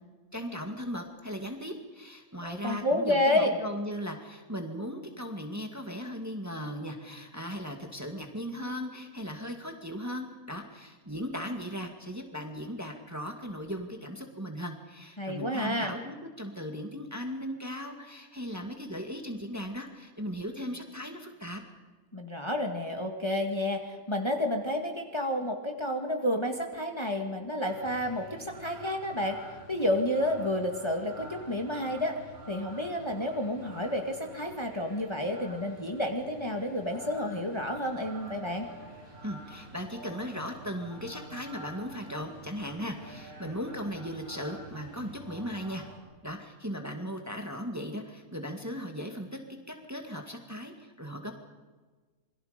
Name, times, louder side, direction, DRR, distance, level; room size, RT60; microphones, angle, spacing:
voice 1, 0.3-21.6 39.2-45.9 46.2-49.4 49.9-51.3, equal, 10° right, 3 dB, 2.0 m, -37 dB
voice 2, 2.4-3.6 15.2-15.9 22.1-29.4 29.7-32.2 32.5-38.7, left 1 dB, 20° left, 3 dB, 2.0 m, -30 dB
sound 1, 27.7-46.0, right 1 dB, 75° right, 6.9 m, -48 dB
27.5 x 22.5 x 5.2 m, 1.3 s
omnidirectional pair, 1.5 m